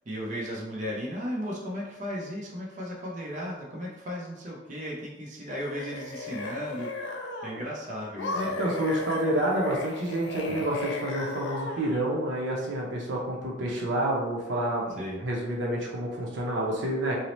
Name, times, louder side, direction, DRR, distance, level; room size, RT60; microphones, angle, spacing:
voice 1, 0.1-8.6 10.5-10.7 15.0-15.2, equal, 45° right, -4 dB, 0.6 m, -35 dB
sound 1, 5.5-7.7 8.2-12.1, left 3 dB, 80° left, 0.4 m, -36 dB
voice 2, 8.3-14.9 15.2-17.2, right 1 dB, 85° right, -2 dB, 0.6 m, -28 dB
2.7 x 2.0 x 3.0 m, 0.99 s
head